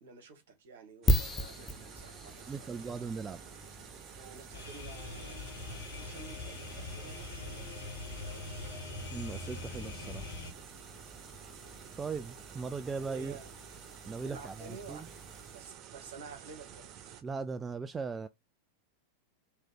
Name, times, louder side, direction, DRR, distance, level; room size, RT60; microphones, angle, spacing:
voice 1, 0.0-3.1 4.1-8.9 13.0-13.5 14.2-15.0 15.5-16.9, right 5 dB, 60° right, 1.9 m, -51 dB
sound 1, 1.0-17.2, right 9 dB, 35° right, 0.7 m, -51 dB
sound 2, 1.1-15.8, equal, 15° left, 1.0 m, -39 dB
voice 2, 2.5-3.4 9.1-10.3 12.0-13.4 14.1-15.1 17.2-18.3, right 4 dB, 15° right, 0.3 m, -38 dB
sound 3, 4.5-10.5, left 3 dB, 55° left, 1.7 m, -43 dB
4.4 x 3.2 x 3.7 m
figure-of-eight pair, 90°, 0 cm